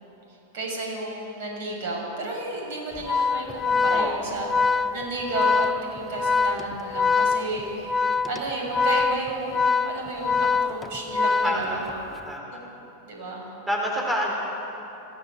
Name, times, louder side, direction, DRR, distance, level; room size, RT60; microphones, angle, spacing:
voice 1, 0.5-7.9 8.2-11.9 12.5-12.6 13.1-13.5, right 2 dB, 50° right, 0 dB, 6.4 m, -32 dB
Organ, 3.0-12.1, left 5 dB, 15° left, 0.6 m, -24 dB
voice 2, 3.9-4.3 11.4-11.9 12.3-12.6 13.7-14.3, equal, 5° right, -2 dB, 4.1 m, -28 dB
23.0 x 16.0 x 7.3 m, 3.0 s
figure-of-eight pair, 90°, 0 cm